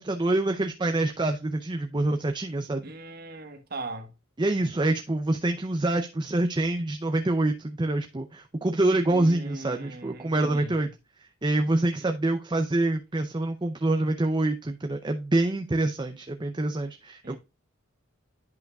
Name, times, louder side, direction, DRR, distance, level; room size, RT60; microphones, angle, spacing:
voice 1, 0.0-2.8 4.4-10.9 11.4-17.4, right 2 dB, 20° right, 0.6 m, -26 dB
voice 2, 2.8-4.1 9.0-10.8 17.2-17.4, right 2 dB, 50° right, 1.4 m, -39 dB
10.5 x 5.6 x 2.3 m
head